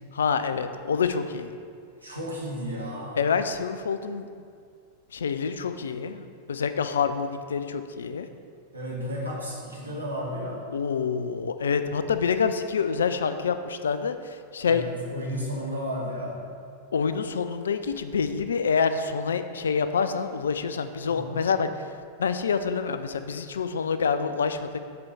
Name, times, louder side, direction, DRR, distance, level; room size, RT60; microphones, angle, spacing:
voice 1, 0.1-1.5 3.2-4.3 5.1-8.3 10.7-14.8 16.9-21.7 22.2-24.7, left 6 dB, 65° left, 10 dB, 0.4 m, -27 dB
voice 2, 2.0-3.2 8.7-10.7 14.6-16.4 21.0-21.3, equal, 85° right, -4 dB, 1.5 m, -33 dB
6.7 x 4.6 x 5.4 m, 2.2 s
figure-of-eight pair, 90°, 0 cm